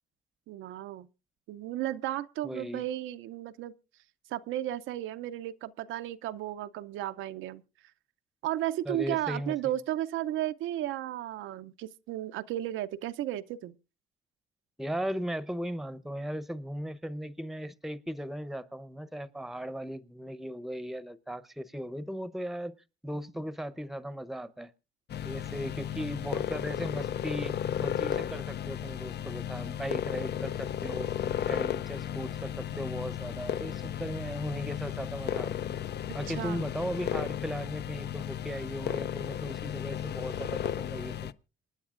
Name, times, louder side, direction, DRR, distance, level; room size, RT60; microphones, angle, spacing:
voice 1, 0.5-1.1 1.5-3.7 4.3-7.6 8.4-13.8 36.3-36.6, right 13 dB, 90° right, 0.6 m, -34 dB
voice 2, 2.4-2.8 8.9-9.7 14.8-22.7 23.0-24.7 25.2-31.1 31.5-35.5 36.1-41.3, equal, ahead, 0.8 m, -37 dB
sound 1, 25.1-41.3, left 10 dB, 60° left, 0.5 m, -34 dB
27.0 x 9.8 x 2.5 m
cardioid pair, 90°, 20 cm